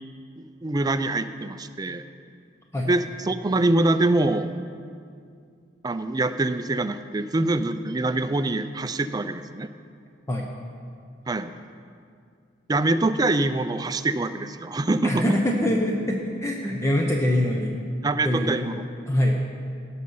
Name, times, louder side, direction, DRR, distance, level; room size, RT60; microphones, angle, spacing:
voice 1, 0.4-2.0 2.8-4.5 5.8-9.7 11.3-11.5 12.7-15.2 18.0-18.8, right 2 dB, 20° right, 10 dB, 0.4 m, -24 dB
voice 2, 15.0-17.8 18.2-18.7 19.1-19.4, left 1 dB, 15° left, 0 dB, 0.7 m, -24 dB
17.5 x 6.4 x 5.5 m, 2.3 s
head